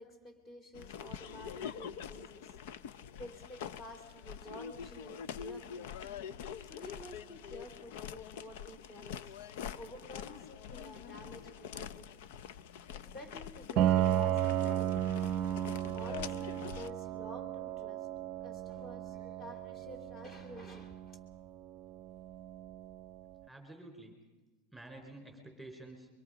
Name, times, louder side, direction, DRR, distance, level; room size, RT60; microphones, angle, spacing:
voice 1, 0.0-5.9 6.6-9.3 9.7-12.2 12.9-18.1 18.4-21.2, equal, 25° left, 7 dB, 3.5 m, -51 dB
sound 1, 0.7-16.9, left 8 dB, 65° left, 0.6 m, -45 dB
Piano, 13.8-23.3, right 11 dB, 35° right, 0.8 m, -34 dB
voice 2, 23.5-24.2 24.7-26.1, right 2 dB, ahead, 3 dB, 4.5 m, -50 dB
24.5 x 24.0 x 5.1 m, 1.2 s
supercardioid pair, 160°, 0 cm